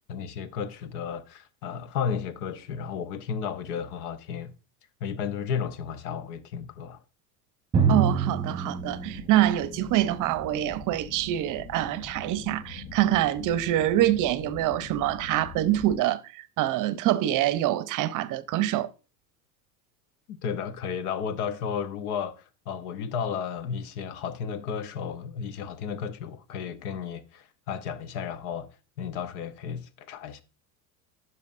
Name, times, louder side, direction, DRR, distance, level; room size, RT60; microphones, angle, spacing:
voice 1, 0.1-4.5 5.0-7.0 20.3-22.4 22.7-28.7 29.0-30.4, left 7 dB, 75° left, 0.9 m, -33 dB
Drum, 7.7-11.3, right 5 dB, 10° right, 1.0 m, -28 dB
voice 2, 7.9-18.9, right 13 dB, 45° right, 0.6 m, -25 dB
sound 1, 8.8-16.0, left 3 dB, 45° left, 1.2 m, -43 dB
10.5 x 5.6 x 2.5 m
hypercardioid pair, 95°, 45 cm